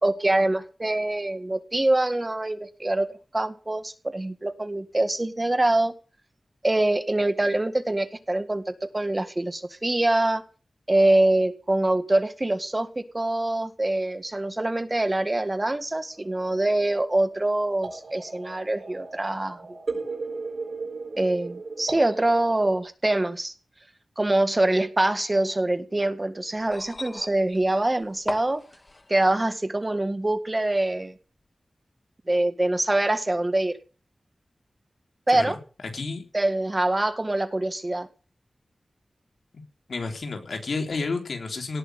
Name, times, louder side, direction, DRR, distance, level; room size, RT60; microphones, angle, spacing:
voice 1, 0.0-3.1 3.3-5.9 6.6-10.4 10.9-19.6 21.2-23.5 24.2-28.6 29.1-31.1 32.3-33.8 35.3-35.6 36.3-38.1, right 1 dB, 25° right, 9 dB, 1.9 m, -24 dB
sound 1, 16.1-22.8, right 3 dB, 75° right, 4.4 m, -37 dB
sound 2, 26.6-29.5 30.6-30.7, left 2 dB, 35° left, 2.1 m, -39 dB
voice 2, 35.9-36.2 39.5-39.6 39.9-41.8, left 3 dB, 80° left, 3 dB, 3.6 m, -31 dB
18.0 x 6.5 x 9.3 m, 0.37 s
wide cardioid pair, 70°, 0 cm